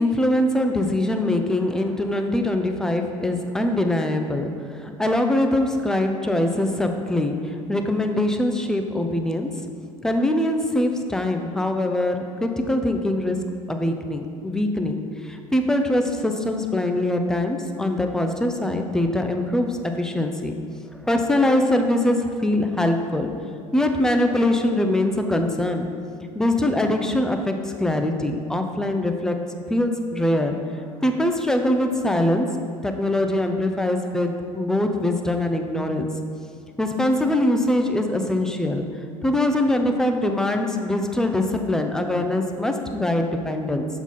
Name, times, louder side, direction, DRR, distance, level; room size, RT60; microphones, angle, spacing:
voice 1, 0.0-9.7 10.0-20.6 21.0-23.3 23.7-25.9 26.3-29.4 29.7-30.6 31.0-32.5 32.8-36.1 36.8-38.9 39.2-43.9, left 1 dB, 5° left, 5 dB, 0.5 m, -23 dB
7.0 x 3.8 x 4.1 m, 2.2 s
figure-of-eight pair, 70°, 19 cm